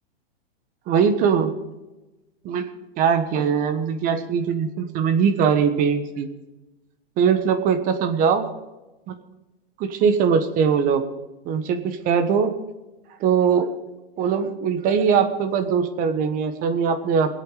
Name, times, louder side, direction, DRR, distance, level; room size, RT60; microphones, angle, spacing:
voice 1, 0.9-1.5 2.4-2.6 3.0-6.3 7.2-8.5 9.8-11.0 11.4-12.5 13.2-13.7 14.2-17.3, right 6 dB, 25° right, 9 dB, 1.3 m, -21 dB
24.5 x 8.2 x 5.0 m, 1.1 s
supercardioid pair, 155°, 31 cm